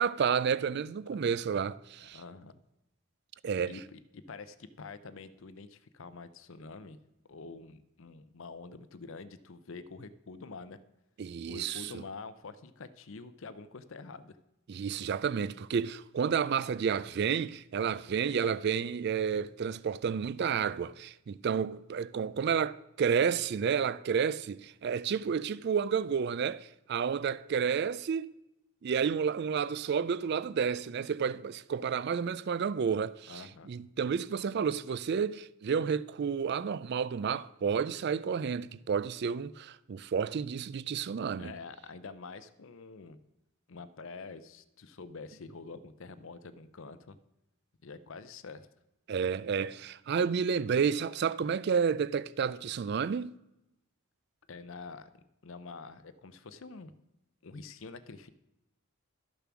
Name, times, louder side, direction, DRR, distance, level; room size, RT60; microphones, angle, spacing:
voice 1, 0.0-2.2 3.4-3.8 11.2-12.0 14.7-28.3 28.8-41.5 49.1-53.4, right 6 dB, 45° right, 0.3 m, -31 dB
voice 2, 2.0-2.6 3.6-7.0 7.3-10.8 11.5-14.4 33.3-33.7 41.4-43.2 43.7-47.2 47.8-48.7 54.5-55.1 55.4-56.9 57.4-58.3, left 4 dB, 60° left, 0.6 m, -46 dB
12.5 x 6.9 x 6.0 m
head